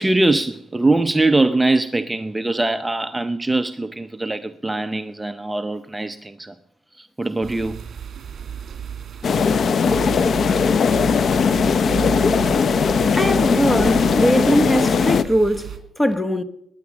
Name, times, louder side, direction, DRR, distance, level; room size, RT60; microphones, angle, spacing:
voice 1, 0.0-6.5 6.9-7.9, right 2 dB, 10° right, 0.7 m, -22 dB
sound 1, 7.4-15.8, right 8 dB, 55° right, 2.6 m, -33 dB
sound 2, 9.2-15.2, left 6 dB, 50° left, 0.7 m, -18 dB
voice 2, 13.2-16.4, equal, 10° left, 1.2 m, -20 dB
20.5 x 9.6 x 6.2 m
cardioid pair, 90°, 0 cm